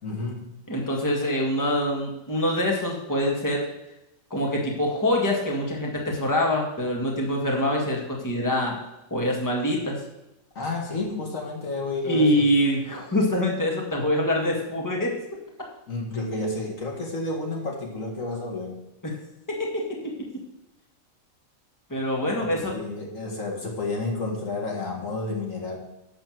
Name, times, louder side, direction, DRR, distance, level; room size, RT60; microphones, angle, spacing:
voice 1, 0.0-0.6 10.6-12.4 15.9-18.8 22.4-25.8, left 2 dB, 70° left, -1 dB, 2.4 m, -31 dB
voice 2, 0.7-3.7 4.3-8.7 9.1-10.0 12.1-15.1 19.0-19.1 19.5-20.3 21.9-22.7, left 1 dB, 15° left, -2 dB, 2.0 m, -25 dB
12.0 x 4.2 x 7.7 m, 0.92 s
omnidirectional pair, 1.4 m